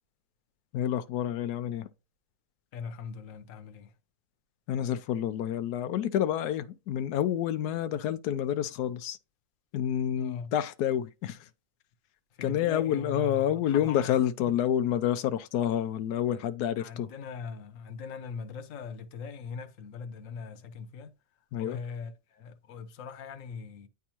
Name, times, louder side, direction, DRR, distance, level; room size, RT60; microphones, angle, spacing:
voice 1, 0.7-1.9 4.7-9.2 9.7-11.4 12.4-17.1 21.5-21.8, left 10 dB, 90° left, 1.1 m, -28 dB
voice 2, 2.7-3.9 10.2-10.5 12.4-14.6 16.8-21.1 21.6-23.9, left 5 dB, 60° left, 1.2 m, -41 dB
9.6 x 3.5 x 2.9 m
omnidirectional pair, 1.6 m